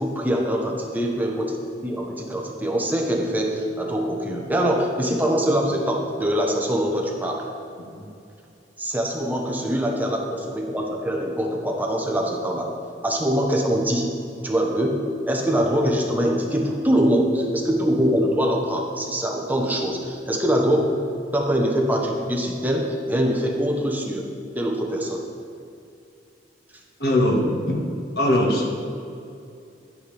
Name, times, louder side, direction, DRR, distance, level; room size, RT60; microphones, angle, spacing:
voice 1, 0.0-1.6 1.8-7.5 8.8-12.7 13.0-14.1 14.4-20.9 21.3-24.3 24.5-25.3, equal, 10° right, 0 dB, 0.9 m, -23 dB
voice 2, 27.0-28.7, left 1 dB, 65° left, -1 dB, 1.5 m, -22 dB
10.5 x 8.5 x 3.4 m, 2.5 s
head